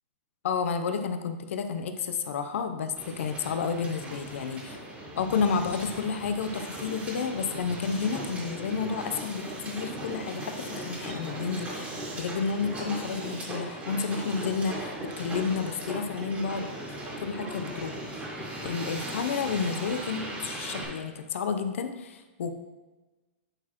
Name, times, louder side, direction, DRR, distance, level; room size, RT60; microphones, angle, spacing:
voice 1, 0.4-4.8 5.2-18.2 18.6-22.5, left 5 dB, 80° left, 8 dB, 0.6 m, -31 dB
Hiss, 3.0-20.8, right 1 dB, 20° right, 1.7 m, -38 dB
8.9 x 4.1 x 2.9 m, 1.2 s
hypercardioid pair, 140°, 7 cm